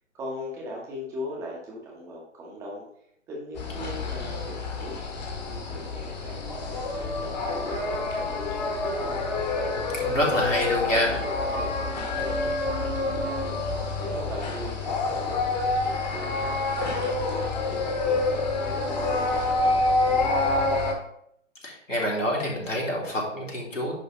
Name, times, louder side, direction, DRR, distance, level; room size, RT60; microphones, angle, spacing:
voice 1, 0.1-2.8 3.3-5.0 5.5-9.2 10.1-13.5 14.0-17.2 17.7-20.9, equal, 5° right, -2 dB, 1.0 m, -39 dB
sound 1, 3.5-20.9, left 2 dB, 35° left, 1.5 m, -27 dB
voice 2, 10.0-11.2 21.6-23.9, left 1 dB, 75° left, -3 dB, 3.4 m, -26 dB
9.7 x 3.3 x 5.5 m, 0.72 s
figure-of-eight pair, 140°, 38 cm